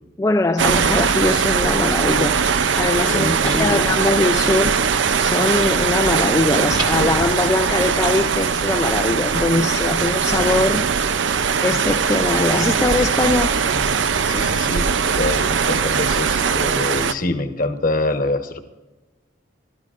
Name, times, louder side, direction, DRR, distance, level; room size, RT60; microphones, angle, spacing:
voice 1, 0.2-2.4 2.8-10.8 11.6-13.6, left 2 dB, 15° left, 0.4 m, -21 dB
sound 1, 0.6-17.1, right 6 dB, 85° right, 0.6 m, -20 dB
sound 2, 2.2-2.4 2.7-2.9 3.1-3.4 3.6-3.8 4.1-4.2 4.6-4.7 5.1-5.2 5.6-5.7 6.0-6.2 6.5-8.5 8.9-9.0 9.4-9.5 9.9-10.0 10.4-10.5 10.9-11.0 11.3-11.5 11.8-12.0 12.3-12.5 12.8-13.0 13.3-13.5 13.7-14.0 14.2-14.4 14.7-14.8 15.2-15.3, equal, 60° right, 1.5 m, -35 dB
voice 2, 3.1-3.8 10.5-10.6 14.3-18.6, left 2 dB, 50° left, 1.1 m, -25 dB
sound 3, 4.4-4.9 5.6-6.4 6.7-7.7, right 3 dB, 25° right, 1.3 m, -35 dB
26.0 x 13.0 x 2.5 m
head